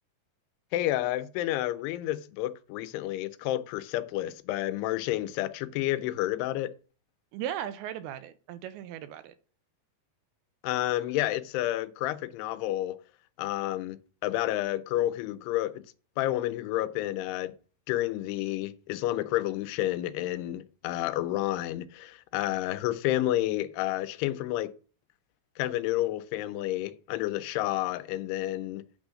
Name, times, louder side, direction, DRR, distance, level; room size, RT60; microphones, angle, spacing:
voice 1, 0.7-6.7 10.6-13.0 13.4-15.8 16.2-17.5 17.9-24.7 25.6-28.8, left 15 dB, 85° left, 2.6 m, -30 dB
voice 2, 7.3-9.3, right 10 dB, 80° right, 2.4 m, -37 dB
8.8 x 3.6 x 6.3 m
omnidirectional pair, 4.6 m